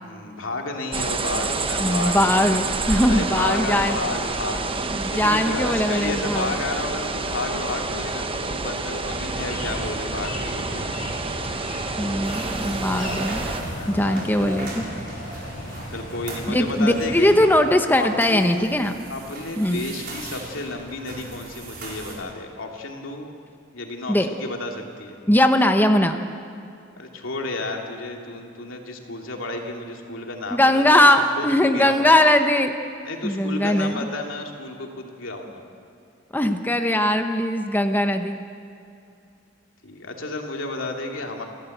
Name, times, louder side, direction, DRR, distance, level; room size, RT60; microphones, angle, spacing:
voice 1, 0.0-2.3 3.1-4.7 5.1-10.9 13.7-14.3 15.9-17.3 18.0-18.7 19.1-23.3 23.7-25.2 27.0-32.2 33.0-35.6 39.8-41.4, left 2 dB, 90° left, 1 dB, 2.7 m, -32 dB
sound 1, 0.9-13.6, right 3 dB, 30° right, 1.1 m, -28 dB
voice 2, 1.8-4.0 4.8-6.5 12.0-13.5 13.9-15.0 16.5-19.0 19.6-19.8 24.1-24.3 25.3-26.2 30.5-32.7 33.2-34.0 36.3-38.4, left 1 dB, 10° left, 6 dB, 0.9 m, -20 dB
sound 2, 9.1-17.6, left 1 dB, 45° left, 7.1 m, -36 dB
sound 3, 12.2-22.1, right 2 dB, 55° right, 5.0 m, -38 dB
28.5 x 13.5 x 8.0 m, 2.5 s
head